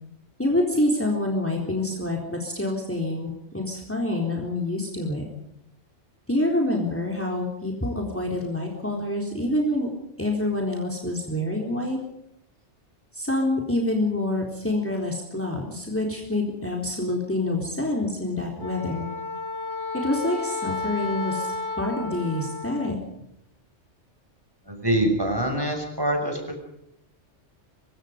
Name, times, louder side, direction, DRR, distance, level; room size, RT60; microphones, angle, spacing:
voice 1, 0.4-5.2 6.3-9.9 10.2-12.0 13.1-19.1 19.9-23.0, left 1 dB, 10° left, 1 dB, 4.0 m, -27 dB
Wind instrument woodwind instrument, 18.6-23.0, left 3 dB, 90° left, 2.0 m, -32 dB
voice 2, 24.7-26.6, right 1 dB, 20° right, 3 dB, 6.2 m, -25 dB
25.0 x 24.0 x 5.2 m, 0.80 s
omnidirectional pair, 1.2 m